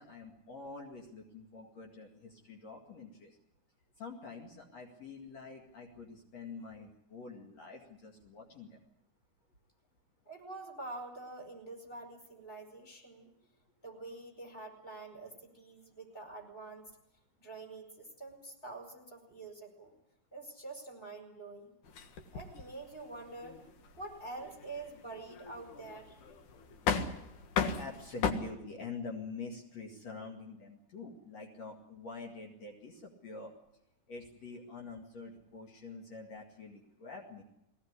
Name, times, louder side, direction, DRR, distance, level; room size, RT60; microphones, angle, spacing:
voice 1, 0.0-3.4 4.0-8.8 27.8-33.5 34.1-37.4, left 4 dB, 60° left, 0 dB, 3.4 m, -46 dB
voice 2, 10.3-13.3 13.8-16.9 17.4-19.9 20.3-21.7 22.3-23.6 24.0-26.2, right 2 dB, 15° left, 4 dB, 5.1 m, -46 dB
sound 1, 21.8-28.3, left 6 dB, 85° left, 3.1 m, -37 dB
21.0 x 18.0 x 9.8 m, 0.85 s
omnidirectional pair, 3.5 m